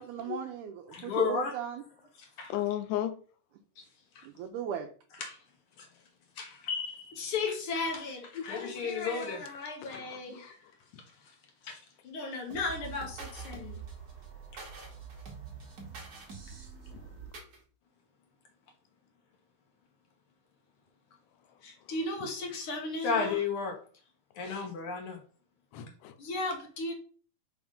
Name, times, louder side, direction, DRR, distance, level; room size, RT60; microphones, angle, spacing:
voice 1, 0.0-1.8 4.2-4.9, right 8 dB, 80° right, 2.0 m, -37 dB
voice 2, 0.9-1.5 2.2-2.5 4.1-4.3 5.2-5.4 5.8-5.9 6.4-10.6 11.6-11.8 12.0-13.8 21.6-23.8 24.3-25.2 26.2-26.9, left 4 dB, 65° left, 1.4 m, -34 dB
voice 3, 2.5-3.1 9.8-10.5 16.9-17.0 24.4-24.7 25.7-26.1, left 13 dB, 90° left, 2.2 m, -35 dB
sound 1, 12.5-17.6, right 5 dB, 45° right, 1.4 m, -45 dB
5.2 x 3.5 x 5.0 m
omnidirectional pair, 3.7 m